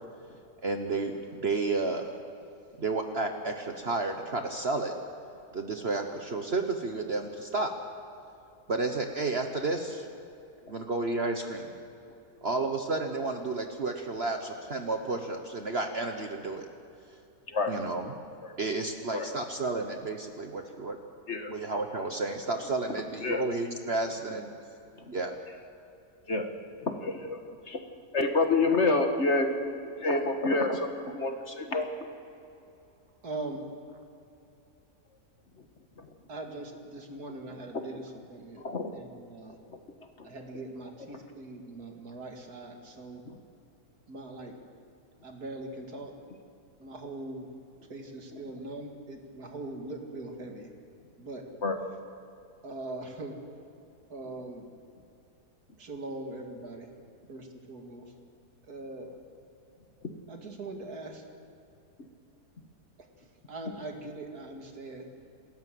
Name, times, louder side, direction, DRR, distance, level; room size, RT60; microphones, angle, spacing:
voice 1, 0.6-2.0 2.8-4.9 5.5-7.7 8.7-10.0 10.7-11.7 12.4-16.7 17.7-18.1 18.6-21.0 21.5-24.5 25.1-25.3, right 3 dB, 45° right, 5 dB, 1.3 m, -31 dB
voice 2, 26.8-27.4 27.7-27.8 28.1-29.5 30.0-30.9 31.1-31.9 37.7-38.0 38.6-38.9 40.2-40.3 48.3-48.4 51.6-51.8, left 3 dB, 45° left, 5 dB, 1.7 m, -28 dB
voice 3, 33.2-33.7 36.3-38.0 38.3-38.6 38.9-39.6 40.2-43.2 44.1-44.5 45.2-46.1 46.8-47.4 47.9-50.7 51.2-51.4 52.6-53.4 54.1-54.7 55.8-56.9 57.3-58.1 58.7-59.2 60.3-61.2 63.5-65.0, right 2 dB, 70° right, 3 dB, 2.6 m, -41 dB
28.0 x 13.5 x 7.7 m, 2.7 s
omnidirectional pair, 1.7 m